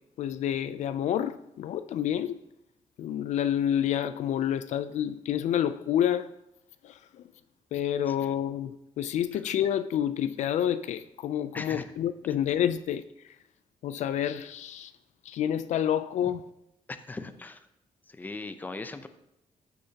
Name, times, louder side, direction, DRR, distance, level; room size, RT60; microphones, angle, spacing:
voice 1, 0.2-2.4 3.0-6.3 6.8-7.0 7.7-13.0 13.8-14.9 15.3-16.4, left 10 dB, 75° left, 0.4 m, -28 dB
voice 2, 8.1-8.4 9.3-9.4 11.5-11.9 16.9-17.7 18.1-19.1, left 3 dB, 15° left, 0.6 m, -40 dB
13.5 x 6.6 x 2.8 m
cardioid pair, 125°, 12 cm